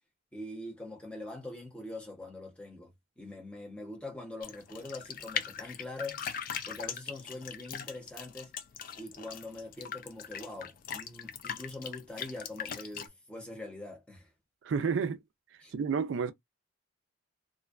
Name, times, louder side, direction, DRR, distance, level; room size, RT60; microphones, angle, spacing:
voice 1, 0.3-6.3 6.6-8.5 9.0-14.3 15.6-15.7, left 2 dB, 5° left, 0.7 m, -43 dB
sound 1, 4.4-13.1, left 8 dB, 45° left, 0.3 m, -40 dB
voice 2, 14.6-15.2 15.7-16.3, right 6 dB, 65° right, 0.3 m, -30 dB
2.5 x 2.1 x 2.3 m
head